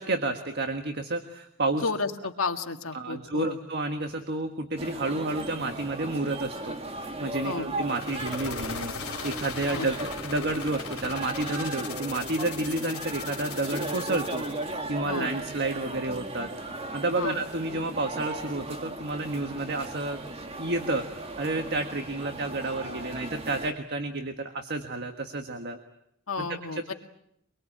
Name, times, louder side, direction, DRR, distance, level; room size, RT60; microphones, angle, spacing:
voice 1, 0.0-1.8 2.9-6.8 7.2-8.9 9.2-16.5 16.9-20.2 20.6-25.8 26.4-26.9, right 2 dB, 50° right, 6 dB, 1.6 m, -30 dB
voice 2, 1.8-3.6 7.4-7.7 9.7-9.9 15.0-15.3 17.1-17.4 26.3-26.9, left 4 dB, 70° left, 5 dB, 2.0 m, -32 dB
sound 1, 4.8-23.7, right 2 dB, 30° right, 1.9 m, -37 dB
sound 2, 7.8-14.6, left 7 dB, 90° left, 3.1 m, -39 dB
24.5 x 23.0 x 8.8 m, 0.80 s
head